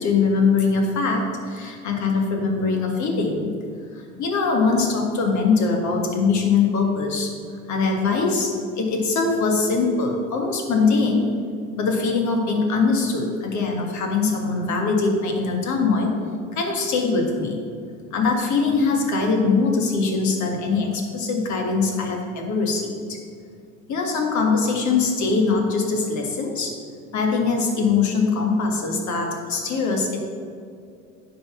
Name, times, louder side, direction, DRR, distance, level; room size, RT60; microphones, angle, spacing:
voice 1, 0.0-3.5 3.9-7.3 7.7-11.3 11.7-16.2 16.5-17.6 18.1-23.2 23.9-26.7 27.1-30.2, left 4 dB, 45° left, 2 dB, 1.9 m, -22 dB
9.9 x 4.1 x 7.2 m, 2.3 s
hypercardioid pair, 75°, 41 cm